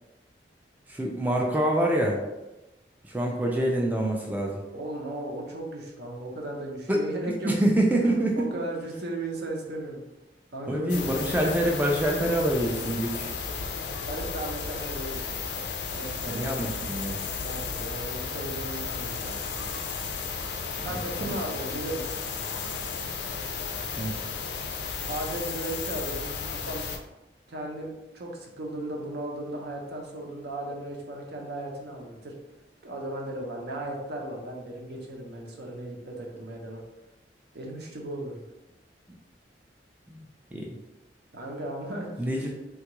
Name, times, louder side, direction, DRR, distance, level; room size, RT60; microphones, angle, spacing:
voice 1, 0.9-2.2 3.0-4.6 6.9-7.0 7.4-8.5 10.7-13.3 16.3-17.2 20.9-21.4 24.0-24.1 40.1-40.2 40.5-40.7 42.2-42.5, right 1 dB, 10° right, -1 dB, 0.3 m, -26 dB
voice 2, 4.7-7.7 8.0-10.0 10.5-11.2 14.0-15.5 15.9-16.7 17.4-19.9 20.8-22.2 25.1-26.9 27.5-32.4 32.8-36.8 37.5-38.5 41.3-42.5, right 1 dB, 65° right, 0 dB, 0.7 m, -36 dB
sound 1, 10.9-27.0, left 5 dB, 65° left, 0.4 m, -34 dB
3.5 x 2.3 x 2.9 m, 1.0 s
head